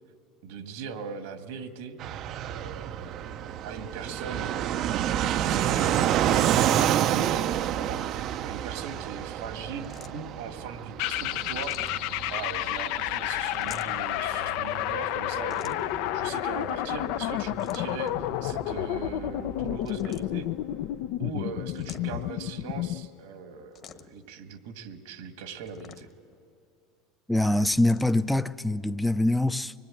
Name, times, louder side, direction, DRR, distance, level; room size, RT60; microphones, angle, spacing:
voice 1, 0.4-2.0 2.5-4.7 5.3-11.8 12.3-20.5 21.2-26.1, right 5 dB, 80° right, 1.8 m, -40 dB
Fixed-wing aircraft airplane, 2.0-20.4, right 11 dB, 50° right, 0.5 m, -30 dB
sound 1, 9.8-10.4 11.5-12.3 13.5-14.2 15.5-16.1 17.4-18.2 19.8-20.6 21.7-22.4 23.7-24.3 25.6-26.3 27.7-28.2, left 7 dB, 35° left, 1.3 m, -48 dB
sound 2, 11.0-23.1, left 14 dB, 65° left, 0.5 m, -31 dB
voice 2, 27.3-29.7, left 1 dB, 5° left, 0.5 m, -24 dB
24.5 x 20.5 x 8.9 m
supercardioid pair, 120°, 0 cm